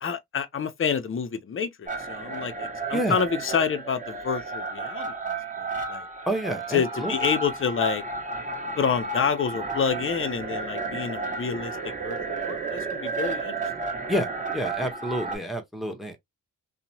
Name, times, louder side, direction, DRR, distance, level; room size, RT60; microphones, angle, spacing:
voice 1, 0.0-6.1 6.7-8.0 8.8-13.5, left 6 dB, 35° left, 0.5 m, -28 dB
sound 1, 1.9-15.4, right 3 dB, 20° right, 1.4 m, -32 dB
voice 2, 6.3-7.2 14.1-14.3 14.5-16.2, equal, ahead, 0.8 m, -28 dB
2.8 x 2.1 x 2.7 m
cardioid pair, 75°, 38 cm